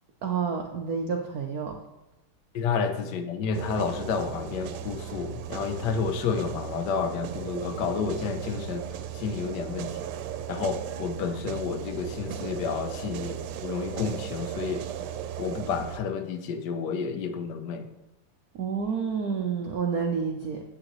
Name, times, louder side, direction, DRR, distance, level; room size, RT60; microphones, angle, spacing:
voice 1, 0.2-1.8 18.6-20.6, right 6 dB, 70° right, 2 dB, 0.8 m, -29 dB
voice 2, 2.5-10.0 10.5-14.8 15.4-17.9, left 5 dB, 65° left, 7 dB, 1.2 m, -30 dB
sound 1, 3.5-16.0, right 9 dB, 85° right, 1.5 m, -37 dB
8.8 x 8.2 x 3.0 m, 0.96 s
omnidirectional pair, 2.4 m